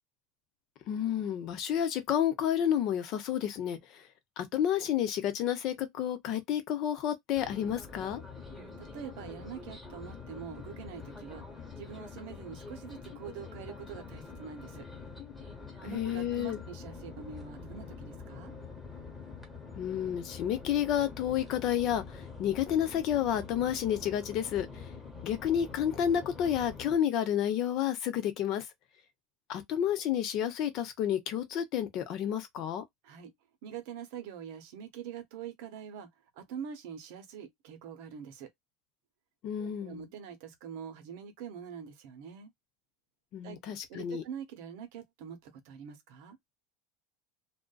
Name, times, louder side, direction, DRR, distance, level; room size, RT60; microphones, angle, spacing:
voice 1, 0.9-4.0 4.4-8.2 15.8-16.6 19.8-24.8 25.2-28.7 29.5-32.8 39.4-40.1 43.3-44.2, left 10 dB, 50° left, 0.7 m, -30 dB
sound 1, 7.3-27.0, left 5 dB, 5° left, 1.1 m, -46 dB
voice 2, 8.5-11.5 11.8-14.9 15.8-18.5 33.0-33.3 33.6-36.1 36.4-38.5 39.6-42.5 43.4-43.6 43.9-46.4, right 8 dB, 70° right, 0.8 m, -44 dB
2.5 x 2.2 x 2.2 m
supercardioid pair, 135°, 0 cm